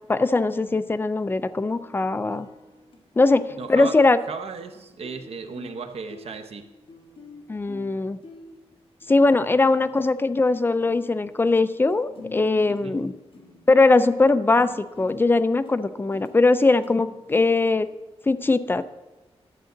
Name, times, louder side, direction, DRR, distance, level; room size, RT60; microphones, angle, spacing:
voice 1, 0.1-2.5 3.2-4.2 7.5-8.2 9.1-13.1 13.7-17.9 18.3-18.8, left 3 dB, 20° left, 12 dB, 0.4 m, -20 dB
sound 1, 1.2-3.1 3.5-3.7 4.0-11.6 11.9-18.0, left 4 dB, 55° left, 1.5 m, -47 dB
voice 2, 3.6-4.0 4.3-6.7 12.7-13.0, right 4 dB, 70° right, 7 dB, 0.8 m, -35 dB
11.5 x 7.6 x 3.9 m, 1.1 s
wide cardioid pair, 150°, 11 cm